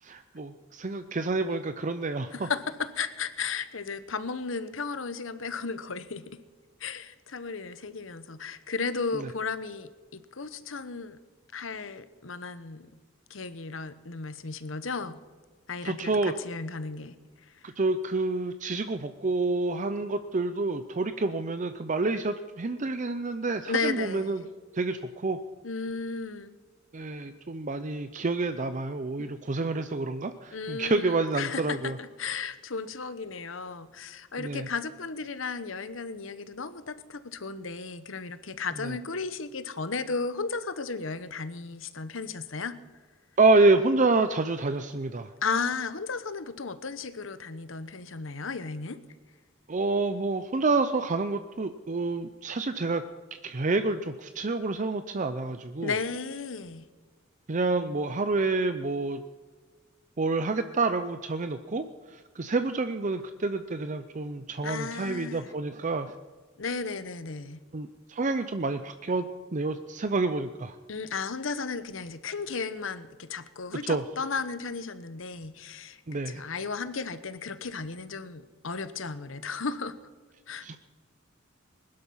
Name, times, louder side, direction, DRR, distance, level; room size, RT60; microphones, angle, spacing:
voice 1, 0.0-2.5 9.1-9.3 15.8-16.3 17.6-24.4 24.7-25.4 26.9-32.0 34.4-34.7 38.8-38.9 43.4-45.3 49.7-53.0 53.4-55.9 57.5-59.2 60.2-66.2 67.7-70.8 73.8-74.0 76.1-76.4 80.6-80.8, right 3 dB, 40° right, 10 dB, 0.6 m, -28 dB
voice 2, 2.3-6.4 6.8-11.2 11.5-12.9 13.3-15.2 15.7-17.2 17.5-17.7 23.7-24.5 25.6-26.6 29.2-29.3 30.5-42.8 45.4-49.0 55.8-56.9 64.6-65.5 66.6-67.6 70.9-80.0 80.5-80.7, left 4 dB, 75° left, 13 dB, 1.0 m, -34 dB
21.0 x 11.5 x 5.6 m, 1.4 s
head